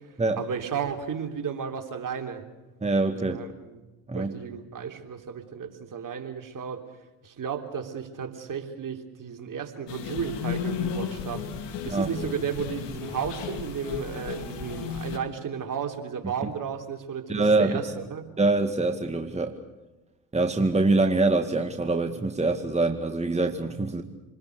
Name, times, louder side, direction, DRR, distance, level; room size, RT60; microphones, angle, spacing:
voice 1, 0.4-2.4 3.3-3.8 4.1-6.8 7.2-17.8 18.1-18.3, right 7 dB, 45° right, 4 dB, 3.6 m, -33 dB
voice 2, 2.8-3.4 4.1-4.3 11.9-12.1 17.3-17.8 18.4-19.6 20.3-24.0, right 3 dB, 15° right, 5 dB, 2.1 m, -24 dB
sound 1, 9.9-15.2, left 7 dB, 70° left, 2.8 m, -34 dB
27.5 x 20.5 x 6.8 m, 1.1 s
hypercardioid pair, 60°, 43 cm